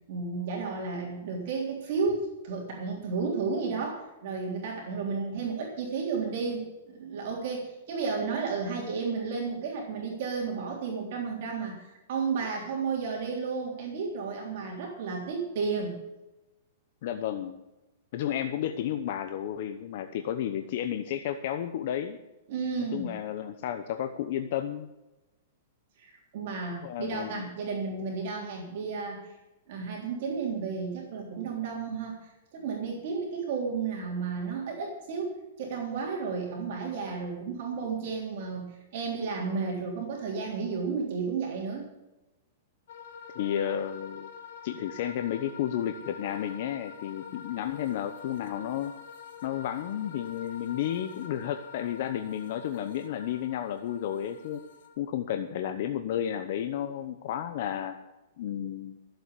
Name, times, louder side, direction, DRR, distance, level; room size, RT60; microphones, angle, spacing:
voice 1, 0.1-16.0 22.5-23.1 26.0-29.3 29.7-41.9, right 5 dB, 50° right, -1 dB, 3.5 m, -32 dB
voice 2, 17.0-17.6 18.1-22.2 22.9-24.9 26.8-27.5 43.3-44.3 44.6-48.9 49.4-54.6 55.0-58.0 58.4-59.0, left 10 dB, 50° left, 8 dB, 0.9 m, -32 dB
sound 1, 42.9-54.9, left 7 dB, 70° left, 2.2 m, -46 dB
14.0 x 7.9 x 8.3 m, 0.99 s
supercardioid pair, 165°, 0 cm